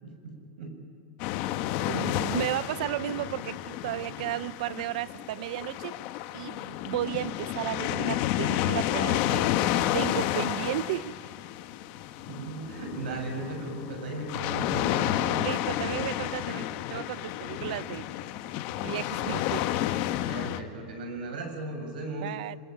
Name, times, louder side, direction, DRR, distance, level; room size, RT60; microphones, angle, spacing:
voice 1, 0.0-0.8 12.3-15.4 20.3-22.3, right 2 dB, 75° right, 7.3 m, -36 dB
sound 1, 1.2-20.6, left 13 dB, 40° left, 1.2 m, -31 dB
voice 2, 1.9-6.0 6.3-9.5 9.9-11.1 15.4-18.1 18.8-19.7 22.2-22.6, right 14 dB, 55° right, 0.7 m, -34 dB
26.5 x 23.5 x 9.4 m
supercardioid pair, 170°, 5 cm